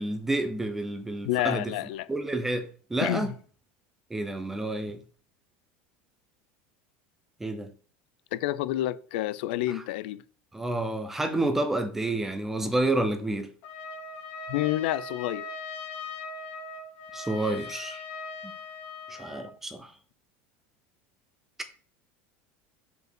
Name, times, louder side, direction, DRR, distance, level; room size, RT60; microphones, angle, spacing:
voice 1, 0.0-1.7 2.1-3.3 4.1-5.0 7.4-7.7 10.5-13.5 17.1-18.0 18.4-18.5 19.1-19.9, right 2 dB, 5° right, 0.6 m, -29 dB
voice 2, 1.3-2.1 3.0-3.3 8.3-10.2 14.5-15.5, left 15 dB, 75° left, 0.5 m, -29 dB
Trumpet, 13.6-19.5, left 4 dB, 45° left, 2.0 m, -40 dB
5.3 x 4.7 x 6.1 m
cardioid pair, 175°, 6 cm